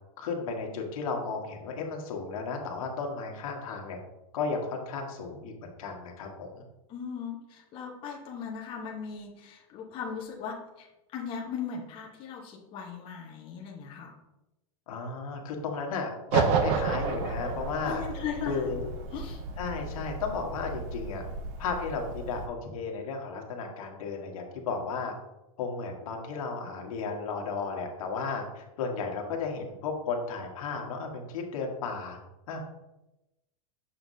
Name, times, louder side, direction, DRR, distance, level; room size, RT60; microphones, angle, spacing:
voice 1, 0.2-4.0 4.3-6.6 14.9-18.0 18.4-18.9 19.6-21.2 21.6-25.1 25.6-32.2 32.5-32.6, left 4 dB, 70° left, 1 dB, 1.5 m, -34 dB
voice 2, 6.9-10.9 11.1-14.1 17.8-18.8 19.1-19.4, left 6 dB, 30° left, -1 dB, 1.1 m, -38 dB
sound 1, 16.3-22.5, right 5 dB, 35° right, 0.6 m, -32 dB
6.8 x 5.8 x 2.7 m, 0.96 s
supercardioid pair, 150°, 18 cm